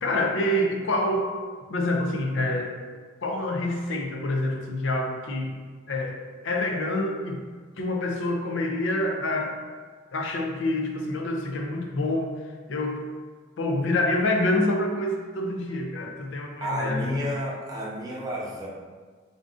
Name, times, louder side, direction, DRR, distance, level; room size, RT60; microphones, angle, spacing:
voice 1, 0.0-1.3 1.7-2.7 3.2-5.6 5.9-7.5 7.8-9.6 10.1-12.3 12.7-13.0 13.6-17.3, left 1 dB, 65° left, 2 dB, 0.5 m, -27 dB
voice 2, 16.6-18.7, equal, 20° right, -5 dB, 0.6 m, -31 dB
3.7 x 2.5 x 3.6 m, 1.5 s
head